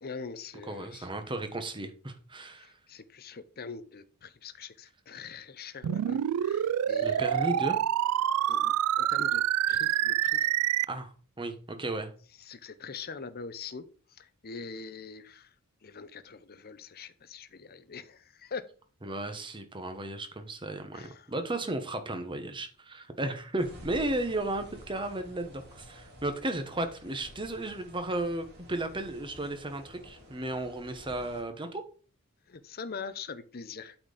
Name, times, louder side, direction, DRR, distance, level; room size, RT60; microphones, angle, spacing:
voice 1, 0.0-1.1 2.6-7.6 8.5-10.5 12.4-15.5 15.8-18.6 20.9-21.3 32.5-34.0, left 5 dB, 45° left, 0.7 m, -43 dB
voice 2, 0.6-2.8 7.0-7.8 10.9-12.1 19.0-31.8, right 2 dB, 25° right, 1.1 m, -34 dB
sound 1, 5.8-10.8, right 11 dB, 90° right, 0.3 m, -27 dB
sound 2, 23.6-31.4, equal, 50° right, 3.4 m, -51 dB
8.8 x 4.4 x 5.0 m
head